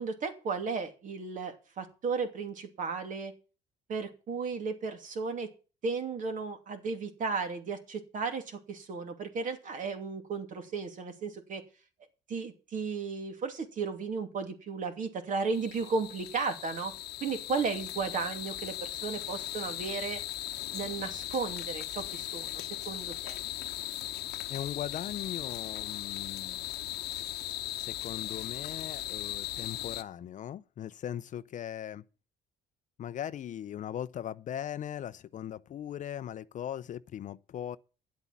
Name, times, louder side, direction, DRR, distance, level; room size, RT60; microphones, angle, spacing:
voice 1, 0.0-3.3 3.9-5.5 5.8-11.6 12.3-16.9 17.2-20.2 20.7-23.4, right 4 dB, 50° right, 2.7 m, -34 dB
sound 1, 15.5-30.0, left 14 dB, 75° left, 1.0 m, -38 dB
voice 2, 24.5-26.6 27.8-32.0 33.0-37.8, left 10 dB, 50° left, 0.6 m, -39 dB
10.5 x 8.1 x 7.3 m
cardioid pair, 110°, 17 cm